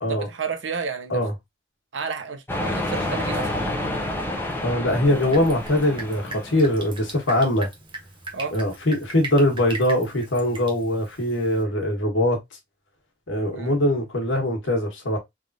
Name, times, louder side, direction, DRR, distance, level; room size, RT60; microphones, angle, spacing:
voice 1, 0.1-1.2 1.9-3.5 6.5-6.7 8.3-8.6 13.5-13.8, right 5 dB, 70° right, 0.7 m, -31 dB
sound 1, 2.5-7.0, left 1 dB, 10° left, 0.6 m, -29 dB
voice 2, 4.6-7.7 8.5-12.4 13.3-15.2, left 1 dB, 80° left, 1.3 m, -22 dB
Drip, 5.0-11.6, right 3 dB, 25° right, 0.8 m, -39 dB
3.4 x 2.5 x 2.5 m
head